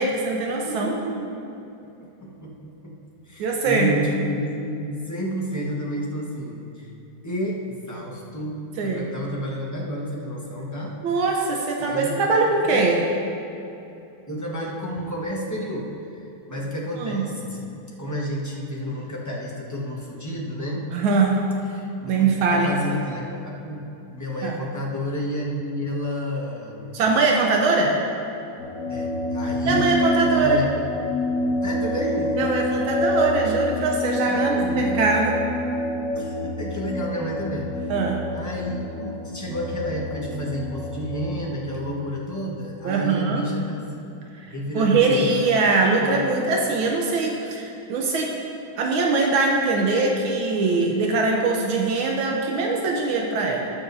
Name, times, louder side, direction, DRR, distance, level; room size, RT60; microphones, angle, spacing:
voice 1, 0.0-0.9 3.4-3.9 8.8-9.1 11.0-13.1 17.0-17.3 20.9-21.5 22.1-22.7 24.4-24.6 26.9-28.0 29.7-30.6 32.4-35.4 37.9-38.3 42.8-43.4 44.4-48.4 48.8-53.7, right 3 dB, 85° right, 0 dB, 1.7 m, -22 dB
voice 2, 0.6-1.5 1.8-2.5 2.8-2.9 3.2-6.9 7.2-10.9 11.8-12.8 14.3-20.9 21.7-27.0 28.9-29.9 30.4-30.9 31.6-32.4 34.3-35.0 36.1-37.9 38.3-44.1 44.5-45.5 46.0-46.2, equal, 10° left, -4 dB, 1.0 m, -31 dB
sound 1, 28.6-41.5, left 1 dB, 50° left, 1.4 m, -27 dB
19.0 x 6.9 x 2.7 m, 2.9 s
omnidirectional pair, 2.2 m